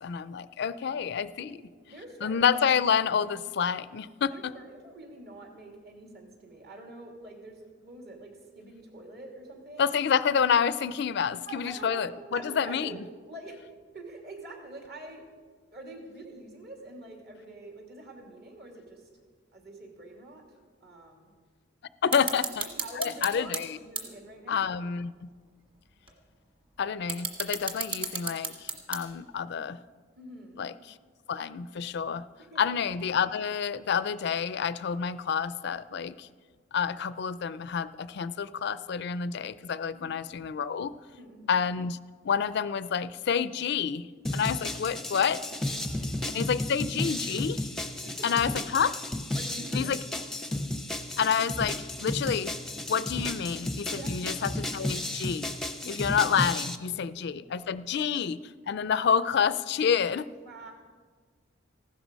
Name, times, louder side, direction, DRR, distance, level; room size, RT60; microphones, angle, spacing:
voice 1, 0.0-1.6 2.2-4.5 9.8-12.9 22.0-22.7 23.0-23.8 24.5-25.3 26.8-29.8 30.6-31.0 31.3-32.2 32.6-36.3 36.7-40.9 41.5-42.0 42.2-44.1 44.3-45.4 46.3-47.7 48.2-49.0 49.7-50.0 51.2-52.5 52.9-55.5 55.9-58.4 58.7-60.3, left 7 dB, 60° left, 16 dB, 0.4 m, -28 dB
voice 2, 1.9-2.4 4.3-9.9 11.5-13.6 13.9-15.2 15.7-19.1 19.5-20.4 20.8-21.3 22.1-22.2 22.8-24.6 30.2-30.6 32.5-32.6 39.9-40.1 41.1-41.5 45.8-46.1 48.0-48.3 49.3-49.9 53.9-54.2 55.8-55.9 56.9-57.1 57.9-58.2 60.4-60.7, right 2 dB, 55° right, 2 dB, 2.8 m, -46 dB
sound 1, 22.1-23.6 24.0-24.1 24.7-24.8 26.1-26.2 26.9-29.3, right 5 dB, 25° right, 1.7 m, -32 dB
sound 2, 44.2-56.8, left 1 dB, ahead, 0.6 m, -33 dB
15.0 x 12.5 x 5.2 m, 1.5 s
head